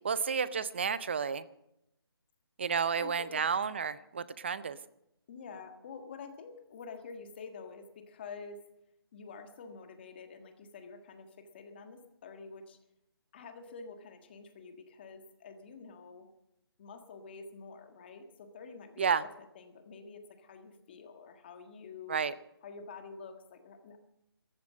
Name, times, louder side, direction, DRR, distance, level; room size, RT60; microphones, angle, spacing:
voice 1, 0.0-1.4 2.6-4.8 19.0-19.2 22.1-22.3, right 6 dB, 25° right, 17 dB, 0.5 m, -31 dB
voice 2, 2.9-3.4 5.3-8.6 9.1-12.8 13.3-16.3 16.8-19.3 19.5-22.2 22.6-24.0, left 5 dB, 25° left, 6 dB, 1.6 m, -48 dB
14.0 x 12.0 x 7.5 m, 0.82 s
hypercardioid pair, 165°, 13 cm